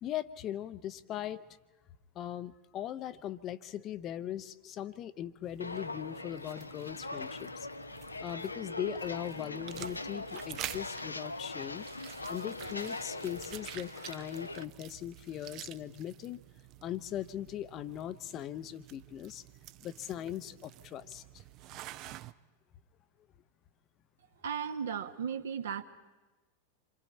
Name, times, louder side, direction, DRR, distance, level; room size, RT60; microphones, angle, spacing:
voice 1, 0.0-1.4 2.1-7.7 8.2-11.9 12.3-16.4 16.8-19.4 19.8-21.4, left 11 dB, 35° left, 13 dB, 0.7 m, -40 dB
sound 1, 5.4-22.3, right 14 dB, 40° right, 0.6 m, -49 dB
Walk footsteps, 5.6-14.6, left 3 dB, 80° left, 0.6 m, -41 dB
voice 2, 24.4-25.8, right 7 dB, 60° right, 8 dB, 1.2 m, -35 dB
28.0 x 24.5 x 4.4 m, 1.2 s
figure-of-eight pair, 90°, 0 cm